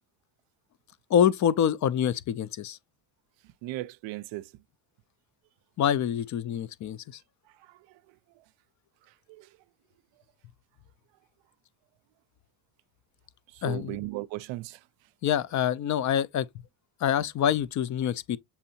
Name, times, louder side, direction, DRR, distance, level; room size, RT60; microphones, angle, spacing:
voice 1, 1.1-2.8 5.8-7.2 13.6-14.0 15.2-16.5 17.0-18.4, left 9 dB, 40° left, 0.4 m, -26 dB
voice 2, 3.4-4.5 7.6-8.0 9.3-9.5 13.5-14.8, right 17 dB, 65° right, 0.5 m, -37 dB
6.9 x 2.6 x 2.7 m
cardioid pair, 100°, 48 cm